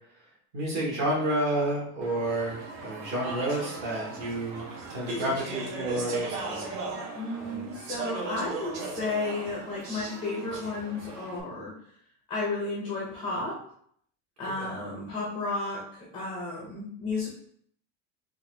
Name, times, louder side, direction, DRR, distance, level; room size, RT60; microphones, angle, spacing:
voice 1, 0.5-6.7 7.3-7.7 14.6-14.7, right 1 dB, 40° right, -4 dB, 1.2 m, -30 dB
Speech / Chatter, 2.0-11.4, right 3 dB, 65° right, 0.9 m, -38 dB
voice 2, 7.1-11.7 12.3-13.6 14.4-17.3, left 3 dB, 15° left, -4 dB, 0.4 m, -33 dB
4.1 x 2.4 x 3.2 m, 0.64 s
cardioid pair, 180°, 42 cm